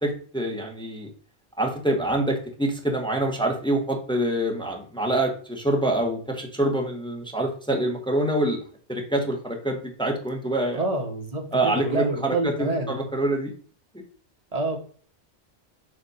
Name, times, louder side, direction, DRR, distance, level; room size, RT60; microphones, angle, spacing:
voice 1, 0.0-1.1 1.6-8.6 8.9-10.8 11.5-13.5, right 1 dB, 5° left, 1 dB, 1.1 m, -26 dB
voice 2, 10.7-13.0 14.5-14.8, right 2 dB, 35° right, 3 dB, 1.3 m, -27 dB
6.9 x 2.6 x 5.3 m, 0.44 s
omnidirectional pair, 1.1 m